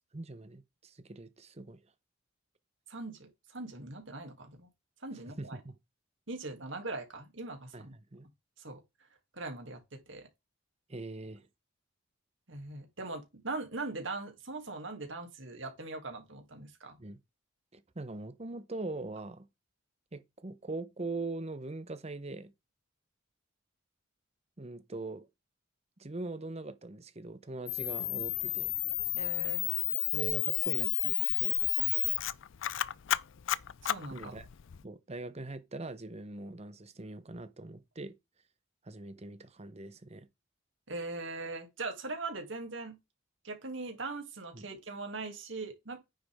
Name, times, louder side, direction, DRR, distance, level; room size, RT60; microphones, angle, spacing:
voice 1, 0.1-1.8 5.4-5.7 7.7-8.3 10.9-11.5 17.0-17.2 17.7-19.5 20.1-22.5 24.6-25.3 26.0-28.7 30.1-31.6 34.1-34.5 34.8-38.1 38.8-40.3 44.5-44.7, right 2 dB, 30° right, 0.9 m, -42 dB
voice 2, 2.9-4.7 5.0-5.6 6.3-7.9 8.6-8.8 9.3-9.8 10.1-10.3 12.5-17.0 29.1-29.7 33.8-34.4 40.9-43.0 43.4-46.0, right 3 dB, 65° right, 2.6 m, -40 dB
Camera, 27.7-34.8, left 16 dB, 65° left, 0.4 m, -32 dB
9.5 x 6.8 x 3.6 m
head